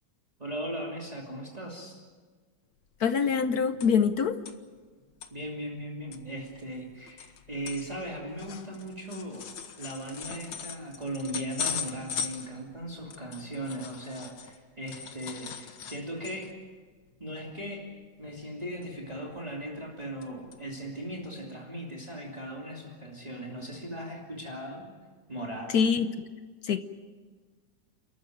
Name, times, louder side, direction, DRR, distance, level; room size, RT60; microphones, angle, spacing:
voice 1, 0.4-2.0 5.3-16.6 17.2-17.9 18.2-24.9 25.3-25.7, right 1 dB, 20° right, -2 dB, 2.9 m, -38 dB
sound 1, 2.9-3.0 3.2-4.1 4.5-4.6 5.0-5.3 5.8-5.9 6.1-14.6 14.9-16.6 17.0-17.2 17.5-17.8 18.8-19.4 19.8-20.3 20.5-20.6 21.2-21.3, left 7 dB, 80° left, 2.0 m, -39 dB
voice 2, 3.0-4.4 25.7-26.2 26.6-26.8, left 6 dB, 60° left, 10 dB, 1.3 m, -24 dB
29.5 x 14.0 x 9.2 m, 1.5 s
omnidirectional pair, 2.0 m